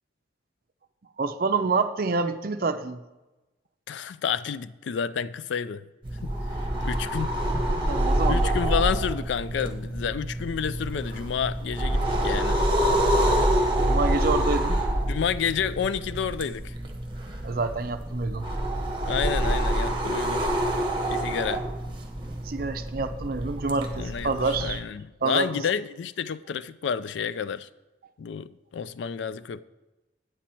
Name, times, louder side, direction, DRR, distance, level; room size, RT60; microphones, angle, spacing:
voice 1, 1.2-3.0 7.8-8.5 13.9-14.8 17.4-18.5 22.4-24.8 25.2-25.6, right 4 dB, 50° right, 0.5 m, -27 dB
voice 2, 3.9-5.8 6.2-6.3 6.6-7.4 8.3-12.6 15.1-16.7 19.1-20.5 21.1-21.6 24.0-24.3 24.6-27.7 28.2-29.6, left 7 dB, 70° left, 0.3 m, -30 dB
sound 1, 6.0-24.8, right 1 dB, 25° right, 1.1 m, -27 dB
9.3 x 7.6 x 4.3 m
head